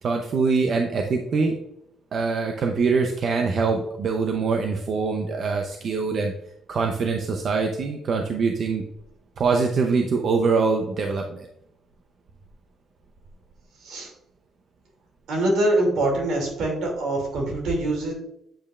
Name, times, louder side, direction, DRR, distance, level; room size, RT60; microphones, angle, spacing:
voice 1, 0.0-1.5 2.1-6.3 6.7-8.8 9.4-11.5, right 4 dB, 50° right, 3 dB, 0.7 m, -23 dB
voice 2, 15.3-18.1, right 1 dB, 75° right, 0 dB, 2.5 m, -24 dB
8.7 x 5.3 x 2.4 m, 0.81 s
cardioid pair, 125°, 0 cm